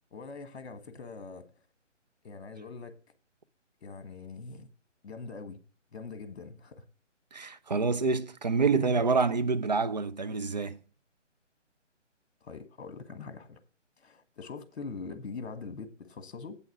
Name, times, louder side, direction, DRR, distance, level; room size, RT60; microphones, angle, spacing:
voice 1, 0.1-1.5 2.2-3.0 3.8-4.7 5.0-5.6 5.9-6.9 12.4-13.6 14.0-16.6, left 4 dB, 60° left, 1.7 m, -43 dB
voice 2, 7.3-10.8, right 4 dB, 35° right, 0.5 m, -27 dB
8.8 x 6.4 x 4.7 m
hypercardioid pair, 160°, 37 cm